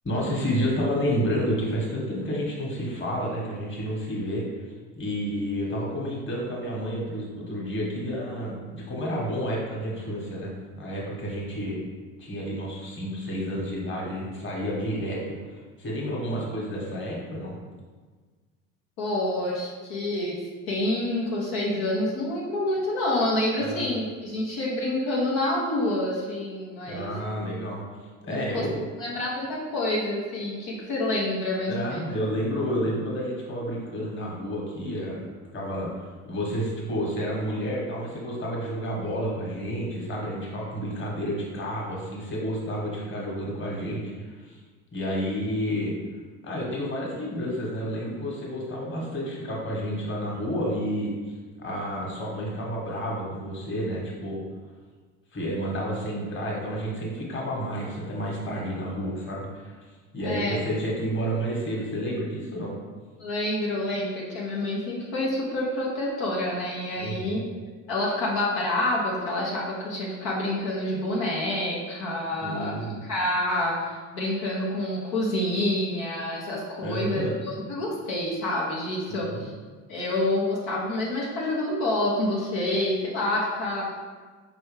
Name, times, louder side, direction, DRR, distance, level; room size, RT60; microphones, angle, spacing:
voice 1, 0.0-4.5 5.0-10.5 10.8-11.8 12.2-17.5 23.6-23.8 26.8-27.8 28.2-28.8 31.7-35.2 35.5-35.9 36.2-44.6 44.9-45.9 46.4-51.1 51.6-54.4 55.3-59.8 60.1-62.7 67.0-67.4 72.4-73.0 76.8-77.3 79.1-79.4, equal, 30° left, -3 dB, 1.5 m, -30 dB
voice 2, 19.0-27.1 28.3-28.6 29.0-32.1 60.2-60.6 63.2-67.4 67.9-72.7 73.0-79.5 79.9-84.0, left 1 dB, 75° left, -5 dB, 1.1 m, -28 dB
4.7 x 3.1 x 3.2 m, 1.4 s
hypercardioid pair, 65°, 37 cm